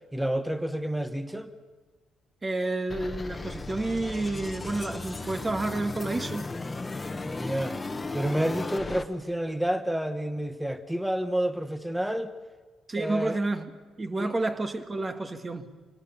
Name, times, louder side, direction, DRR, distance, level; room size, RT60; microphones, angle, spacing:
voice 1, 0.1-1.5 7.2-7.8 8.1-12.3 13.0-13.4 14.2-14.4, right 1 dB, 5° right, 1.3 m, -29 dB
voice 2, 2.4-6.5 12.9-13.6 14.0-15.7, right 2 dB, 25° right, 1.6 m, -30 dB
sound 1, 2.9-9.0, left 3 dB, 20° left, 1.3 m, -36 dB
25.5 x 18.5 x 7.1 m
cardioid pair, 90°, 0 cm